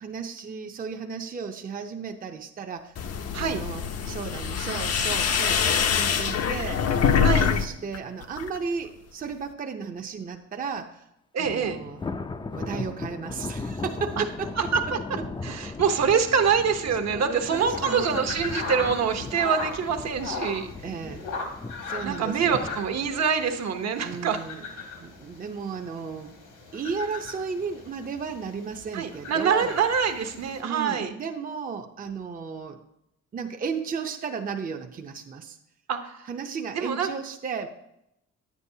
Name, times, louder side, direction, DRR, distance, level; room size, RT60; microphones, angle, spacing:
voice 1, 0.0-2.9 3.4-6.8 7.4-11.1 11.4-12.0 12.5-15.6 16.0-16.4 17.1-18.3 20.8-21.2 21.8-22.7 24.0-26.4 26.7-29.7 30.6-32.8 33.3-35.6 36.2-37.7, right 5 dB, 30° right, 4 dB, 0.6 m, -34 dB
sound 1, 3.0-7.6 7.9-8.6, left 7 dB, 55° left, 0.7 m, -24 dB
voice 2, 11.3-11.8 14.7-15.0 15.4-20.7 22.0-24.4 28.9-31.1 35.9-36.3 36.7-37.1, right 6 dB, 60° right, 6 dB, 0.9 m, -25 dB
Thunder, 11.4-24.7 25.1-25.4 25.8-25.9 26.8-27.3, left 3 dB, 15° left, 0.4 m, -38 dB
sound 2, 17.5-30.6, left 4 dB, 80° left, 2.1 m, -38 dB
9.5 x 8.3 x 2.7 m, 0.82 s
cardioid pair, 90°, 30 cm